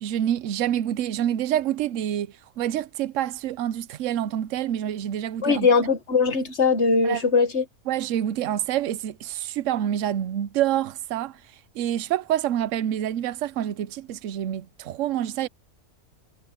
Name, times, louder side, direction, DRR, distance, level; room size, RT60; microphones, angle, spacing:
voice 1, 0.0-2.3 2.6-5.7 7.0-7.2 7.9-11.3 11.7-15.5, right 11 dB, 70° right, 1.0 m, -27 dB
voice 2, 5.4-7.7, left 4 dB, 50° left, 2.1 m, -20 dB
omnidirectional pair, 1.5 m